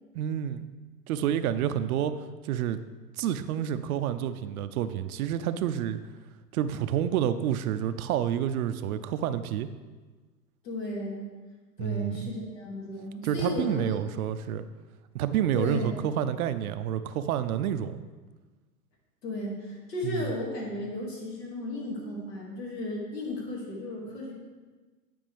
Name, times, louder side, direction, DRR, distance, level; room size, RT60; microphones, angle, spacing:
voice 1, 0.1-0.7 1.1-2.1 2.4-2.8 3.2-6.0 6.5-9.7 11.8-12.3 13.2-14.7 15.1-18.0 20.0-20.3, right 10 dB, 60° right, 11 dB, 0.5 m, -29 dB
voice 2, 10.6-11.2 11.8-14.0 15.5-15.9 19.2-24.3, left 1 dB, 75° left, -2 dB, 2.4 m, -34 dB
9.3 x 5.1 x 3.4 m, 1.3 s
hypercardioid pair, 105°, 50 cm